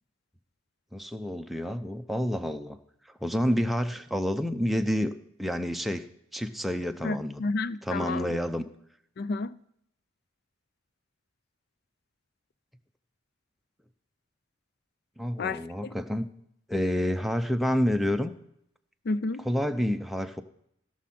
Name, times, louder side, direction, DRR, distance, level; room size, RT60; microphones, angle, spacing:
voice 1, 0.9-2.8 3.2-5.1 5.4-6.1 6.3-7.5 7.8-8.7 15.2-16.3 16.7-18.3 19.5-20.4, equal, ahead, 0.6 m, -28 dB
voice 2, 7.0-8.3 9.2-9.5 15.4-15.6 19.1-19.4, left 3 dB, 50° left, 0.4 m, -30 dB
16.5 x 6.3 x 4.3 m
head